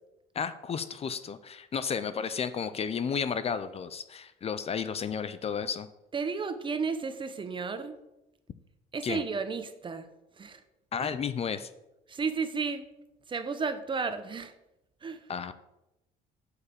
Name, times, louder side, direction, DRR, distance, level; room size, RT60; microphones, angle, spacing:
voice 1, 0.3-5.9 9.0-9.2 10.9-11.7 15.3-15.5, left 6 dB, 35° left, 12 dB, 0.6 m, -32 dB
voice 2, 6.1-8.0 8.9-10.1 10.4-10.6 11.0-11.1 12.1-12.9 13.3-14.5 15.0-15.2, right 5 dB, 30° right, 10 dB, 0.9 m, -33 dB
7.9 x 5.7 x 6.9 m, 0.92 s
cardioid pair, 110°, 17 cm